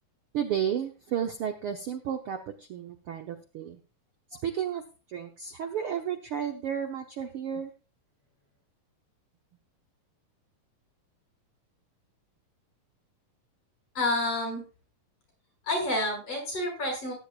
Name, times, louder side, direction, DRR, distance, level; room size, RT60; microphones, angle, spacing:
voice 1, 0.3-3.8 4.3-4.8 5.1-7.7, right 9 dB, 70° right, 5 dB, 1.3 m, -32 dB
voice 2, 14.0-14.6 15.7-17.1, left 1 dB, 45° left, 1 dB, 7.7 m, -29 dB
18.0 x 10.5 x 2.4 m, 0.33 s
omnidirectional pair, 3.7 m